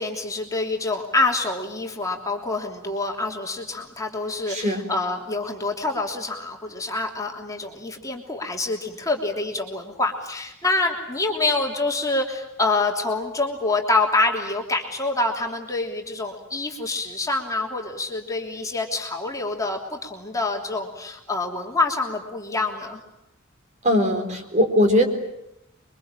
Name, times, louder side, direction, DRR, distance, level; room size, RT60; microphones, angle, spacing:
voice 1, 0.0-23.0, left 2 dB, 15° left, 1 dB, 3.2 m, -26 dB
voice 2, 4.5-4.8 23.8-25.0, left 1 dB, 35° right, 5 dB, 4.2 m, -20 dB
28.0 x 23.5 x 9.0 m, 0.84 s
head